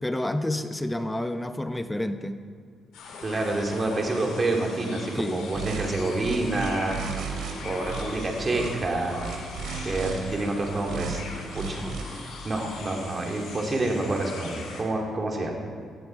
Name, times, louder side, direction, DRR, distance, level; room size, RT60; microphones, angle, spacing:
voice 1, 0.0-2.4 5.1-5.4 11.6-12.0, left 1 dB, 10° left, 9 dB, 0.9 m, -29 dB
sound 1, 2.9-14.8, left 3 dB, 85° left, 4.1 m, -41 dB
voice 2, 3.2-7.3 7.6-9.3 9.8-11.2 11.5-15.5, right 2 dB, 30° right, 0 dB, 3.1 m, -28 dB
sound 2, 5.5-5.9 6.2-7.5 7.8-8.7 9.2-10.2 10.8-11.2 11.5-12.0, right 6 dB, 80° right, 2.7 m, -34 dB
18.0 x 15.5 x 4.8 m, 2.3 s
cardioid pair, 85°, 0 cm